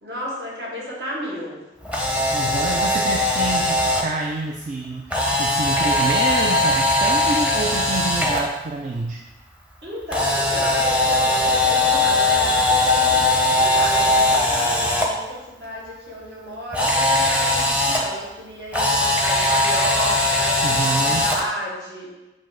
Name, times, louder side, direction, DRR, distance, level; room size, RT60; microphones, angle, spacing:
voice 1, 0.0-1.6 9.8-22.1, equal, 65° right, -6 dB, 2.2 m, -33 dB
Camera, 1.8-4.0 5.1-8.4 10.1-15.0 16.7-18.0 18.7-21.4, left 2 dB, 5° right, 0.7 m, -20 dB
voice 2, 2.3-9.2 20.6-21.3, right 3 dB, 45° right, 1 dB, 0.4 m, -27 dB
7.9 x 3.1 x 5.0 m, 1.1 s
head